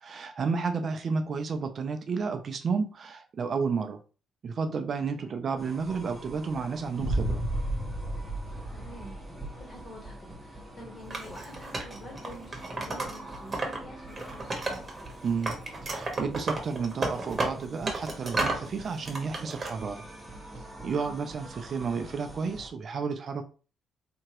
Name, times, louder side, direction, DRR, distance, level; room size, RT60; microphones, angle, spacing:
voice 1, 0.0-4.0 4.4-7.4 15.2-15.6 15.8-20.0 20.8-23.4, right 5 dB, 50° right, 0.5 m, -31 dB
sound 1, 5.6-22.7, right 1 dB, 5° left, 1.3 m, -45 dB
Boom, 7.0-10.0, right 1 dB, 85° left, 0.9 m, -32 dB
voice 2, 8.7-9.2 9.6-14.9 20.9-21.1, equal, 40° left, 1.7 m, -48 dB
Wood, 11.1-13.8 14.1-15.1 15.4-18.7 19.0-19.7, right 2 dB, 35° right, 1.1 m, -32 dB
3.4 x 2.9 x 3.0 m
cardioid pair, 90°, 0 cm